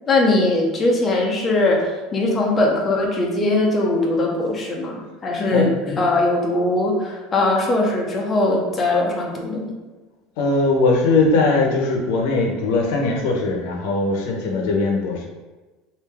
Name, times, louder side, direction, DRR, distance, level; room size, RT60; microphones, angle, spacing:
voice 1, 0.1-9.7, left 2 dB, 20° left, -2 dB, 0.7 m, -20 dB
voice 2, 10.4-15.2, left 3 dB, 70° left, 0 dB, 0.8 m, -20 dB
3.4 x 2.7 x 3.4 m, 1.2 s
cardioid pair, 150°, 0 cm